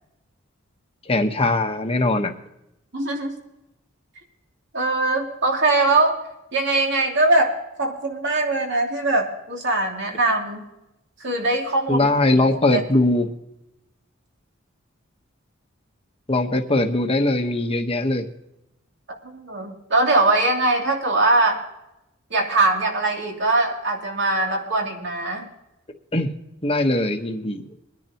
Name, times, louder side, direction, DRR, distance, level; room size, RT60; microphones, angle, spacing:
voice 1, 1.1-2.3 11.9-13.3 16.3-18.3 26.1-26.3 26.6-27.6, left 2 dB, 30° left, 4 dB, 1.2 m, -21 dB
voice 2, 2.9-3.4 4.7-6.2 6.5-10.6 11.2-12.1 12.7-12.8 19.2-21.6 22.3-25.5, right 2 dB, 60° right, 0 dB, 2.9 m, -21 dB
23.0 x 10.5 x 3.0 m, 0.91 s
head